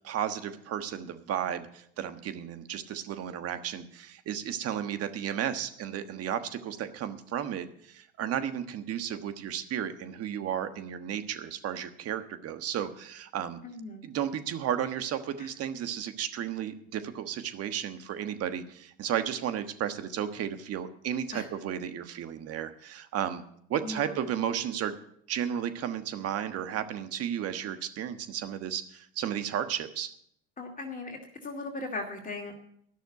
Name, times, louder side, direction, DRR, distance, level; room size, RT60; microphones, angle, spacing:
voice 1, 0.0-13.6 14.0-23.4 23.7-25.0 25.3-30.1, right 9 dB, 50° right, 10 dB, 1.4 m, -33 dB
voice 2, 13.6-14.1 15.4-15.5 21.3-21.5 23.8-24.3 30.6-32.6, left 2 dB, 25° left, 1 dB, 2.3 m, -38 dB
12.5 x 6.5 x 9.4 m, 0.68 s
supercardioid pair, 95°, 31 cm